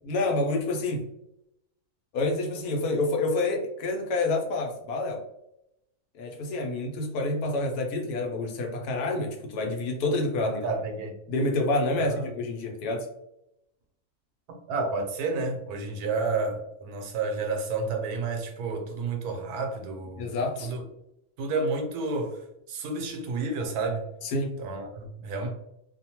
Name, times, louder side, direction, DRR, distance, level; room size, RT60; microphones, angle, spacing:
voice 1, 0.0-1.0 2.1-5.2 6.1-10.6 11.3-13.1 20.2-20.7 24.2-24.6, left 2 dB, 80° left, 1.2 m, -28 dB
voice 2, 10.4-11.1 12.0-12.3 14.5-20.8 21.4-22.4 22.7-24.1 24.6-25.5, right 3 dB, 80° right, 1.1 m, -31 dB
2.8 x 2.1 x 2.8 m
omnidirectional pair, 1.6 m